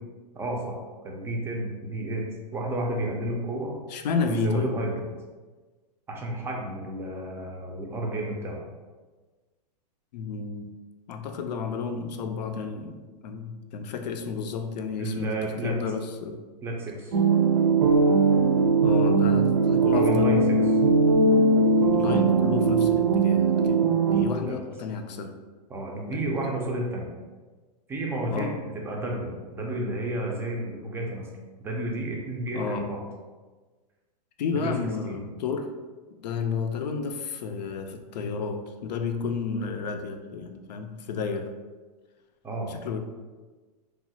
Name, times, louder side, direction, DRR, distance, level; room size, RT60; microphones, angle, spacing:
voice 1, 0.3-0.8 1.0-2.2 2.5-3.7 4.3-5.1 6.1-8.6 15.0-15.7 16.6-17.1 19.9-20.6 24.4-24.6 25.7-27.1 27.9-31.3 31.6-33.0 34.5-34.7 35.1-35.2 42.4-42.7, right 1 dB, 10° right, -1 dB, 0.4 m, -31 dB
voice 2, 3.9-4.7 10.1-10.7 11.1-16.4 18.8-20.5 21.9-25.4 26.1-26.3 28.3-28.6 32.5-33.0 34.4-35.7 36.2-41.5 42.7-43.0, left 5 dB, 80° left, 6 dB, 0.4 m, -31 dB
sound 1, 17.1-24.2, right 3 dB, 65° right, 0.5 m, -20 dB
2.9 x 2.3 x 2.7 m, 1.3 s
hypercardioid pair, 130°, 21 cm